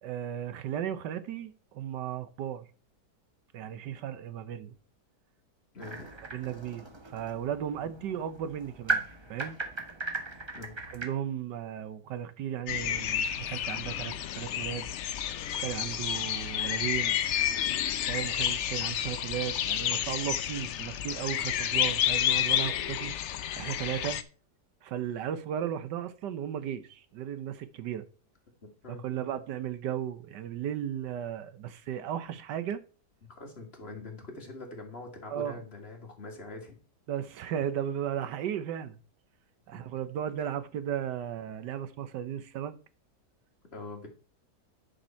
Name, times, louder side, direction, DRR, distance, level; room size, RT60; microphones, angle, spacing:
voice 1, 0.0-2.7 3.5-4.7 6.3-9.0 9.3-9.6 10.9-14.9 15.5-17.2 18.0-23.1 23.6-24.2 24.8-28.1 29.0-32.8 35.3-35.6 37.1-39.0 39.7-42.8, right 10 dB, 85° right, 1.5 m, -35 dB
voice 2, 5.7-6.0 10.5-10.8 28.6-29.0 33.3-36.8 39.7-39.8 43.7-44.1, left 2 dB, 35° left, 2.2 m, -43 dB
sound 1, 5.8-11.1, right 3 dB, 20° right, 1.1 m, -37 dB
sound 2, 12.7-24.2, left 10 dB, 65° left, 0.7 m, -30 dB
10.0 x 5.5 x 4.3 m
omnidirectional pair, 1.8 m